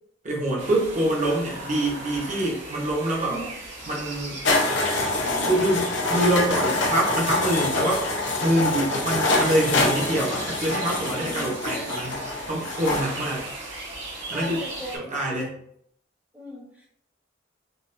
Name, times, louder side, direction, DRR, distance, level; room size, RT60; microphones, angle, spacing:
voice 1, 0.2-3.4 3.9-4.4 5.4-12.2 12.5-13.5 14.3-14.6 15.1-15.6, right 1 dB, 40° right, -3 dB, 0.8 m, -25 dB
sound 1, 0.6-15.0, right 2 dB, 60° right, 1.2 m, -38 dB
sound 2, 4.4-13.0, left 2 dB, 65° left, 0.7 m, -25 dB
voice 2, 5.2-5.8 8.5-8.9 11.1-11.5 13.2-13.4 14.3-15.3 16.3-16.9, right 1 dB, 10° right, -4 dB, 0.8 m, -38 dB
3.9 x 2.4 x 2.5 m, 0.70 s
head